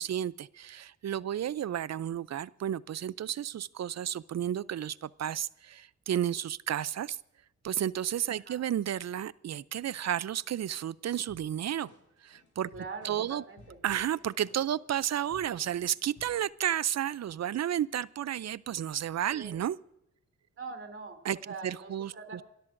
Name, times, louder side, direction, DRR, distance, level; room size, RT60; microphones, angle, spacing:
voice 1, 0.0-7.2 7.6-11.9 12.2-12.7 13.0-13.4 13.8-19.8 21.2-21.4 21.6-22.1, right 10 dB, 65° right, 20 dB, 0.5 m, -32 dB
sound 1, 11.3-16.5, left 3 dB, 90° left, 5.0 m, -58 dB
voice 2, 12.7-13.8 19.4-19.6 20.6-22.4, right 4 dB, 45° right, 4 dB, 3.0 m, -43 dB
29.0 x 13.5 x 2.6 m, 0.79 s
cardioid pair, 70°, 29 cm